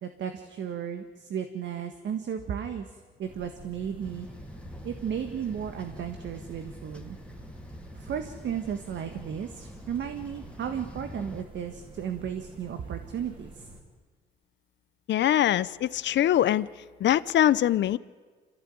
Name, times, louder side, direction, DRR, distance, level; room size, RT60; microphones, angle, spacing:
voice 1, 0.0-2.9 3.2-4.3 4.8-7.2 7.9-13.7, right 8 dB, 65° right, 7 dB, 1.6 m, -34 dB
sound 1, 3.2-13.8, right 2 dB, 25° right, 4.3 m, -48 dB
sound 2, 4.0-11.4, left 1 dB, 5° left, 2.0 m, -46 dB
voice 2, 15.1-16.7 17.0-18.0, left 12 dB, 65° left, 17 dB, 0.7 m, -23 dB
26.0 x 15.0 x 9.5 m, 1.5 s
cardioid pair, 90°, 20 cm